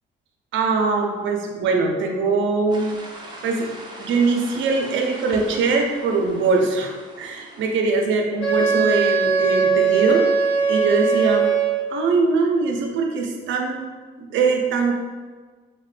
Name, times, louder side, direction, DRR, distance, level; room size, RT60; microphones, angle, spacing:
voice 1, 0.5-2.9 3.4-3.7 4.0-10.3 10.7-11.5 11.9-13.8 14.2-14.9, right 4 dB, 75° right, 2 dB, 0.5 m, -22 dB
sound 1, 2.7-7.7, right 1 dB, 20° right, 0.6 m, -40 dB
Wind instrument woodwind instrument, 8.4-12.0, right 5 dB, 85° left, 1.0 m, -20 dB
3.1 x 2.1 x 3.1 m, 1.4 s
cardioid pair, 90°, 20 cm